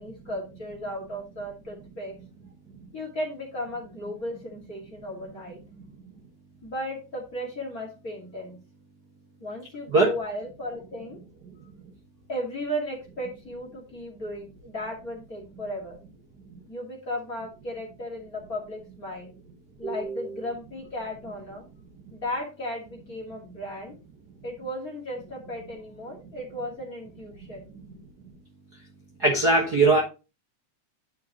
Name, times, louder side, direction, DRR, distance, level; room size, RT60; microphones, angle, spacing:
voice 1, 0.0-2.1 2.9-5.6 6.6-8.6 9.4-11.2 12.3-16.0 16.7-19.3 19.8-21.6 22.1-23.9 24.4-27.7, left 1 dB, 30° left, -2 dB, 2.3 m, -35 dB
voice 2, 19.8-20.4 29.2-30.0, right 3 dB, 45° right, -1 dB, 1.4 m, -21 dB
10.0 x 5.7 x 3.0 m, 0.29 s
omnidirectional pair, 3.5 m